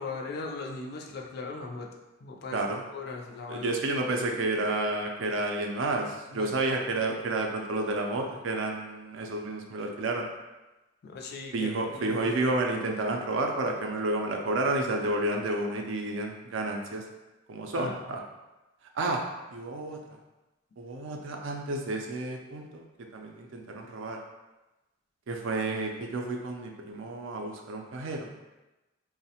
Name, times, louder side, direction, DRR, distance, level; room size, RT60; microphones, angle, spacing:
voice 1, 0.0-2.6 2.9-3.7 6.3-6.5 11.0-12.3 17.7-18.0, left 3 dB, 50° left, 1 dB, 0.3 m, -39 dB
voice 2, 3.5-10.3 11.5-17.0 17.5-18.2 18.9-19.2 19.5-20.0 20.8-22.8 23.1-24.2 25.3-28.3, right 2 dB, 65° right, 2 dB, 0.4 m, -30 dB
3.0 x 2.0 x 2.8 m, 1.1 s
head